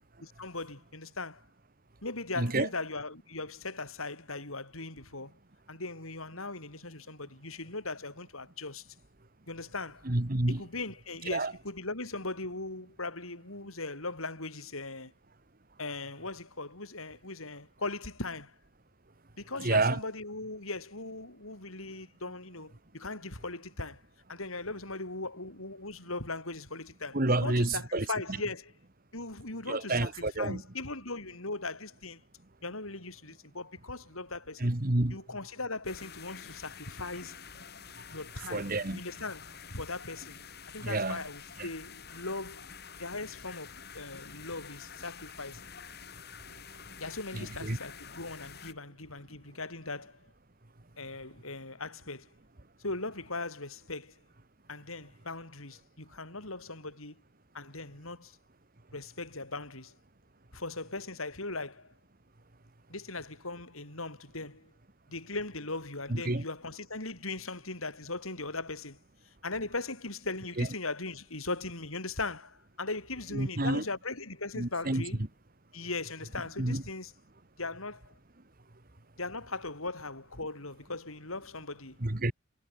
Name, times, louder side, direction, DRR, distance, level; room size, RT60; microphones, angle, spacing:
voice 1, 0.2-1.4 2.0-5.3 5.7-8.9 9.5-10.1 10.5-15.1 15.8-18.5 19.4-24.0 24.3-28.7 29.1-32.2 32.6-34.7 35.1-37.4 38.1-40.4 40.7-42.6 43.0-45.6 47.0-50.2 51.0-52.3 52.8-54.1 54.7-57.2 57.5-58.3 58.9-59.9 60.5-61.9 62.9-64.7 65.1-69.0 69.4-75.2 75.7-77.1 77.6-78.1 79.2-82.0, left 3 dB, 80° left, 7.3 m, -39 dB
voice 2, 2.4-2.7 10.0-10.6 11.3-11.5 19.6-20.0 27.1-28.1 29.7-30.6 34.6-35.2 38.5-39.0 40.8-41.2 41.6-41.7 47.3-47.8 66.1-66.4 70.6-70.7 73.3-73.8 74.5-75.0 76.6-76.8 82.0-82.3, right 2 dB, 45° right, 1.6 m, -29 dB
sound 1, 35.8-48.7, left 6 dB, 50° left, 7.2 m, -48 dB
head